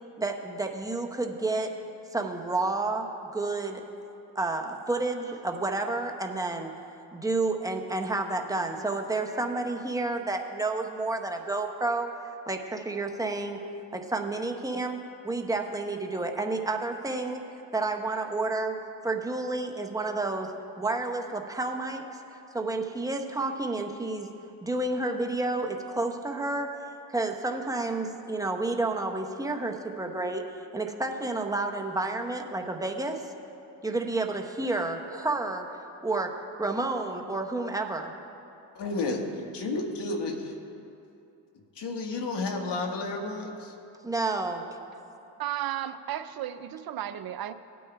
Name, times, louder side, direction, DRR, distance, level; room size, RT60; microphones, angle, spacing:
voice 1, 0.2-1.7 2.1-3.9 4.3-6.7 7.1-12.1 12.5-13.6 13.9-17.4 17.7-22.0 22.5-24.3 24.6-26.8 27.1-33.2 33.8-38.1 44.0-44.7, right 2 dB, 5° right, 3 dB, 1.0 m, -30 dB
voice 2, 38.8-40.5 41.7-43.7, left 3 dB, 55° left, 2 dB, 1.7 m, -31 dB
voice 3, 45.4-47.5, right 12 dB, 45° right, 12 dB, 0.6 m, -34 dB
18.0 x 9.3 x 2.4 m, 2.7 s
supercardioid pair, 60°, 49 cm